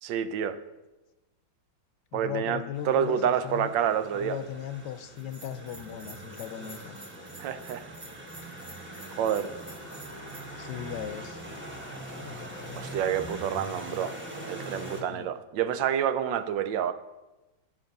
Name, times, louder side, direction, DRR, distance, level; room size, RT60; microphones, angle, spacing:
voice 1, 0.0-0.6 2.1-4.4 7.4-7.9 9.2-9.5 12.8-14.1 14.5-16.9, right 9 dB, 80° right, 11 dB, 1.3 m, -28 dB
voice 2, 2.1-3.7 4.1-7.0 10.6-11.4 15.1-15.3, left 10 dB, 70° left, 10 dB, 1.1 m, -37 dB
sound 1, 2.7-15.0, right 1 dB, 10° right, 0.9 m, -42 dB
Bell, 5.2-10.4, right 2 dB, 30° right, 1.6 m, -49 dB
11.5 x 5.8 x 5.3 m, 1.1 s
omnidirectional pair, 2.0 m